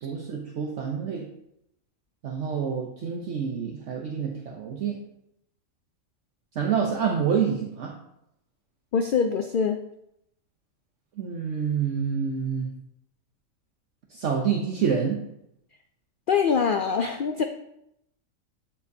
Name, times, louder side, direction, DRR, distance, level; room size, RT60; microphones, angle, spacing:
voice 1, 0.0-1.3 2.2-5.0 6.6-7.9 11.2-12.7 14.1-15.2, right 7 dB, 60° right, 0 dB, 1.1 m, -27 dB
voice 2, 8.9-9.8 16.3-17.4, left 6 dB, 80° left, 6 dB, 0.4 m, -24 dB
12.0 x 4.5 x 2.7 m, 0.80 s
omnidirectional pair, 1.5 m